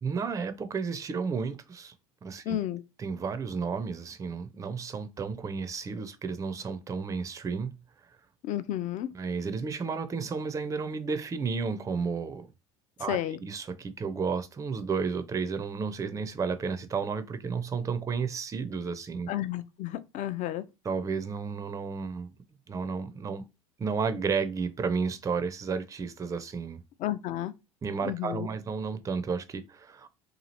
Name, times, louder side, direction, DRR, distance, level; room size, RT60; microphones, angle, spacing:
voice 1, 0.0-1.9 2.2-2.6 3.0-7.7 9.1-12.5 13.0-19.3 20.8-22.3 22.7-23.4 23.8-26.8 27.8-30.1, right 5 dB, 20° right, 0.4 m, -32 dB
voice 2, 2.5-2.8 8.4-9.1 13.1-13.4 19.3-20.6 27.0-27.5 28.0-28.5, left 13 dB, 45° left, 0.4 m, -32 dB
2.8 x 2.4 x 2.8 m
hypercardioid pair, 70°, 18 cm